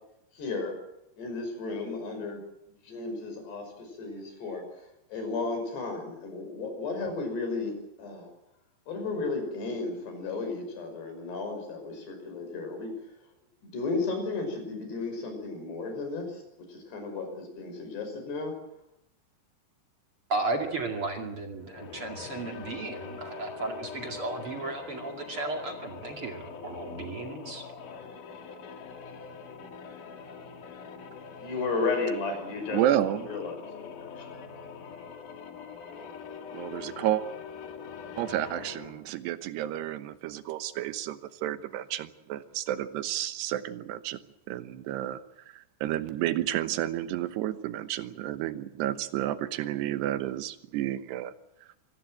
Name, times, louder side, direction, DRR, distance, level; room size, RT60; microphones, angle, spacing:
voice 1, 0.4-0.8 1.2-2.4 2.8-8.3 8.9-12.9 13.6-16.4 16.7-18.5 31.1-34.4, left 3 dB, 80° left, 5 dB, 7.8 m, -34 dB
voice 2, 20.3-27.6, right 3 dB, 40° right, 3 dB, 2.6 m, -34 dB
sound 1, 21.6-39.1, left 6 dB, 55° left, 3.5 m, -43 dB
voice 3, 32.7-33.4 36.5-37.2 38.2-44.2 44.5-45.2 45.5-51.3, right 12 dB, 90° right, 11 dB, 3.2 m, -31 dB
25.0 x 18.5 x 7.7 m, 0.83 s
omnidirectional pair, 4.7 m